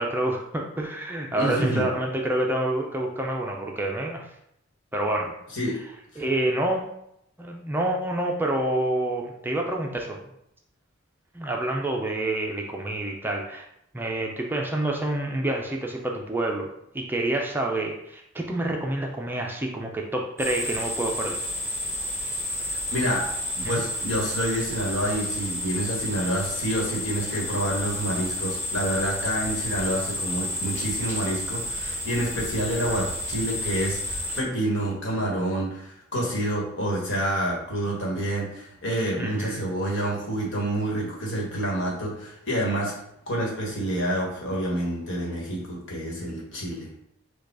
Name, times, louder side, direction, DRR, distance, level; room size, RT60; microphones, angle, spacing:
voice 1, 0.0-4.3 4.9-5.3 6.2-6.8 7.4-10.2 11.3-13.7 13.9-16.7 16.9-21.4 23.6-23.8 39.2-39.6, right 1 dB, 10° right, 0 dB, 0.4 m, -28 dB
voice 2, 1.4-1.9 5.5-5.7 6.1-6.2 22.7-23.3 23.6-42.9 43.3-46.9, right 1 dB, 65° left, -3 dB, 1.4 m, -28 dB
sound 1, 20.4-34.4, left 1 dB, 10° left, 1.4 m, -31 dB
4.8 x 2.3 x 4.7 m, 0.78 s
head